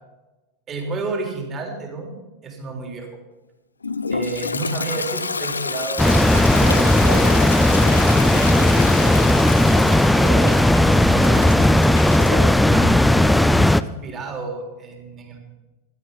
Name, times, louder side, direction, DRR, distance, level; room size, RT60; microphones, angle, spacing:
voice 1, 0.7-2.2 2.4-3.1 4.1-7.5 8.4-9.2 10.1-11.5 12.1-15.4, right 3 dB, 25° right, 2 dB, 3.6 m, -31 dB
Toilet flush, 3.8-12.4, left 4 dB, 75° left, 0.6 m, -29 dB
sound 1, 6.0-13.8, left 1 dB, 5° left, 0.5 m, -16 dB
16.0 x 11.5 x 5.7 m, 1.1 s
figure-of-eight pair, 90°, 0 cm